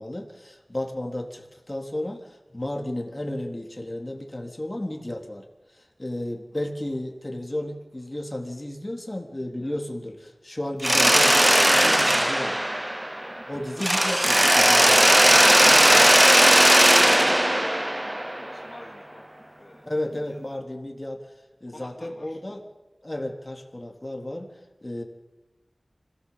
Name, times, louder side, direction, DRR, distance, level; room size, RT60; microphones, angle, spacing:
voice 1, 0.0-5.4 5.7-12.6 13.5-15.0 19.9-21.2 21.6-22.6 23.0-24.5 24.8-25.0, left 1 dB, 30° left, 2 dB, 3.8 m, -33 dB
Mechanisms, 10.8-13.4 13.8-18.6, right 1 dB, 15° right, 0.7 m, -18 dB
voice 2, 13.7-14.1 15.0-20.6 21.7-22.4, left 1 dB, 50° left, 0 dB, 3.0 m, -47 dB
25.5 x 17.5 x 7.7 m, 1.1 s
wide cardioid pair, 40°, 0 cm